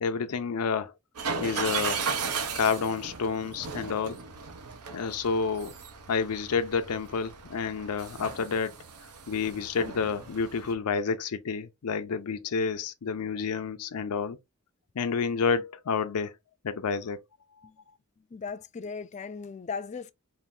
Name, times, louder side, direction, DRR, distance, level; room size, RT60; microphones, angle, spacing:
voice 1, 0.0-0.9 1.4-2.0 2.5-4.2 4.9-5.7 6.1-8.7 9.3-14.4 15.0-16.3 16.6-17.2, left 5 dB, 85° left, 0.5 m, -29 dB
sound 1, 1.2-10.7, right 5 dB, 85° right, 0.9 m, -36 dB
voice 2, 18.3-20.1, left 5 dB, 30° left, 0.3 m, -37 dB
4.1 x 2.5 x 3.6 m
head